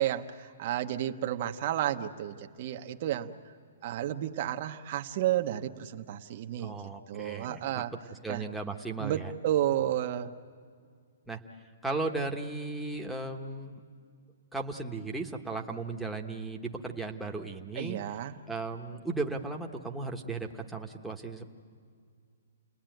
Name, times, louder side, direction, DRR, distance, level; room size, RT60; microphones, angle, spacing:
voice 1, 0.0-3.3 3.8-6.7 7.1-7.9 8.3-8.4 9.0-10.3 17.8-18.4, right 12 dB, 40° right, 6 dB, 1.0 m, -31 dB
voice 2, 6.6-7.6 8.1-9.3 11.3-11.4 11.8-13.8 14.5-18.2 18.5-21.5, right 3 dB, ahead, 0 dB, 1.2 m, -36 dB
29.5 x 20.0 x 9.2 m, 2.1 s
hypercardioid pair, 160°, 0 cm